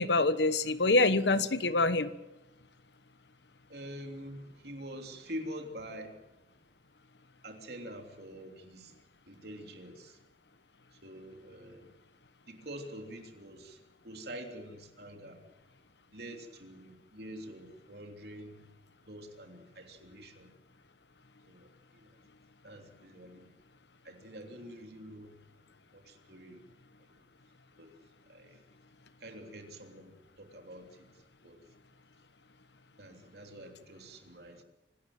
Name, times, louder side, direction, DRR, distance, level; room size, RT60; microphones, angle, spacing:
voice 1, 0.0-2.1, left 2 dB, 80° left, 13 dB, 1.2 m, -25 dB
voice 2, 3.7-6.2 7.4-9.0 9.3-10.2 10.9-11.9 12.5-15.4 16.1-18.7 19.1-20.5 21.5-22.2 22.6-23.5 24.0-25.4 25.9-26.6 27.8-27.9 28.3-28.6 29.2-31.6 33.0-34.6, equal, 65° right, 4 dB, 3.3 m, -46 dB
26.0 x 12.5 x 9.0 m, 0.98 s
head